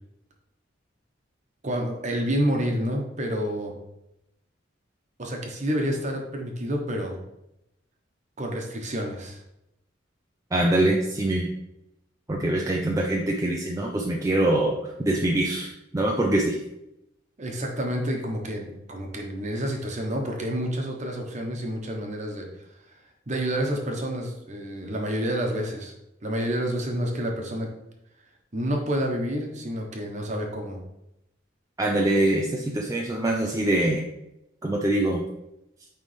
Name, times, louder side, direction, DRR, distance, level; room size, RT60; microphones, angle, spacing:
voice 1, 1.6-3.7 5.2-7.2 8.4-9.4 17.4-22.5 23.3-25.9 26.2-27.7 28.5-30.8, equal, 40° right, 2 dB, 1.1 m, -29 dB
voice 2, 10.5-11.5 12.3-16.6 31.8-34.1 34.6-35.2, right 1 dB, 15° right, -1 dB, 0.5 m, -24 dB
9.2 x 3.4 x 3.3 m, 0.86 s
head